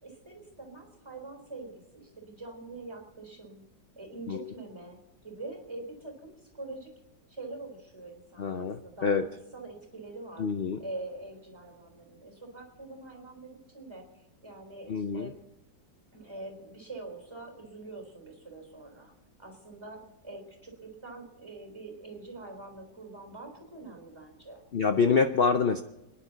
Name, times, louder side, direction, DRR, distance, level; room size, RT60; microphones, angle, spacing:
voice 1, 0.0-3.6 4.0-5.0 5.2-6.9 7.3-10.5 10.8-15.4 16.1-19.1 19.4-24.6, right 2 dB, 15° right, 2 dB, 3.8 m, -44 dB
voice 2, 8.4-9.2 10.4-10.8 14.9-15.3 24.7-25.8, left 5 dB, 75° left, 8 dB, 0.5 m, -26 dB
30.0 x 10.5 x 4.0 m, 0.94 s
omnidirectional pair, 1.9 m